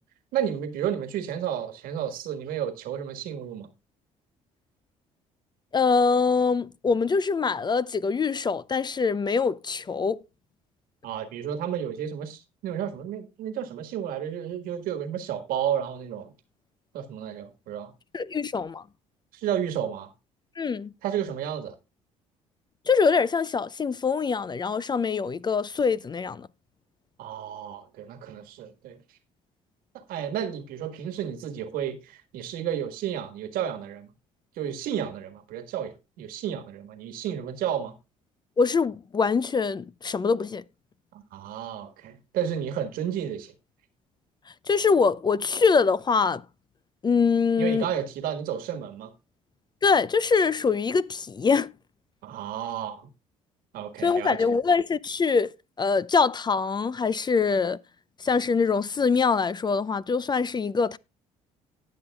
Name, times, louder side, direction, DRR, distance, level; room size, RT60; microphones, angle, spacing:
voice 1, 0.3-3.7 11.0-16.3 16.9-17.9 19.3-20.1 21.0-21.7 27.2-29.0 29.9-34.1 34.6-37.9 41.1-43.5 47.6-49.1 52.2-53.1 53.7-54.5, right 9 dB, 70° right, 1.6 m, -32 dB
voice 2, 5.7-10.2 18.1-18.8 20.6-20.9 22.9-26.5 38.6-40.6 44.7-46.4 47.0-47.9 49.8-51.7 54.0-55.5 55.8-57.8 58.2-61.0, left 5 dB, 30° left, 0.5 m, -24 dB
18.5 x 6.3 x 2.3 m
hypercardioid pair, 65°, 15 cm